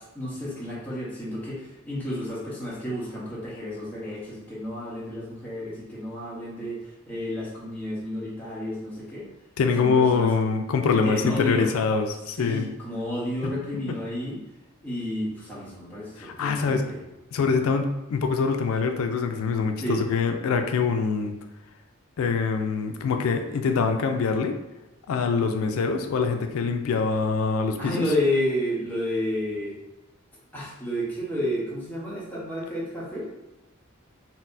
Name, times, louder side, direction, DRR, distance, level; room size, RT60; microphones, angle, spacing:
voice 1, 0.1-9.3 9.8-10.3 10.9-11.7 12.4-14.4 14.8-17.0 19.8-20.0 25.4-25.5 27.8-29.8 30.5-33.3, left 1 dB, 10° left, -8 dB, 0.9 m, -31 dB
voice 2, 9.6-12.7 16.2-16.9 17.3-21.3 22.2-24.5 25.1-28.0, left 5 dB, 75° left, 5 dB, 0.3 m, -24 dB
4.1 x 2.0 x 2.5 m, 1.0 s
head